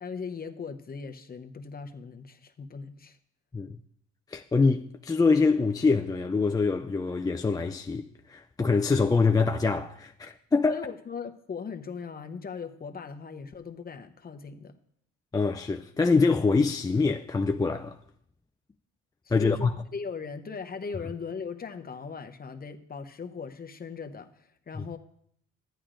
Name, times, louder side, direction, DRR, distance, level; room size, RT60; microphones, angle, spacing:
voice 1, 0.0-3.2 10.7-14.7 19.4-25.0, left 5 dB, 30° left, 0.7 m, -39 dB
voice 2, 4.3-10.9 15.3-18.0 19.3-19.7 24.7-24.8, left 4 dB, 15° left, 0.3 m, -25 dB
14.0 x 10.0 x 2.5 m
cardioid pair, 90°, 30 cm